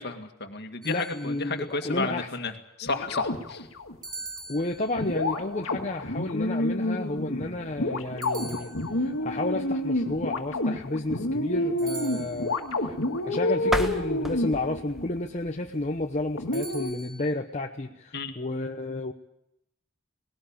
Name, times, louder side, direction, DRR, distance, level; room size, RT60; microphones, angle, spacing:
voice 1, 0.0-2.5 2.8-3.7 18.1-18.3, left 3 dB, 50° left, 6 dB, 2.1 m, -32 dB
voice 2, 0.8-2.3 4.5-8.7 9.0-19.1, left 2 dB, 35° left, 4 dB, 0.9 m, -31 dB
sound 1, 0.8-1.7 4.0-5.3 8.2-9.3 11.8-12.7 16.5-17.3, right 3 dB, 20° right, 2.4 m, -43 dB
sound 2, 2.8-4.0 5.0-15.2 16.4-16.9, left 1 dB, 75° left, 1.9 m, -29 dB
sound 3, 13.6-16.5, equal, ahead, 1.4 m, -34 dB
19.0 x 18.0 x 8.8 m, 0.84 s
head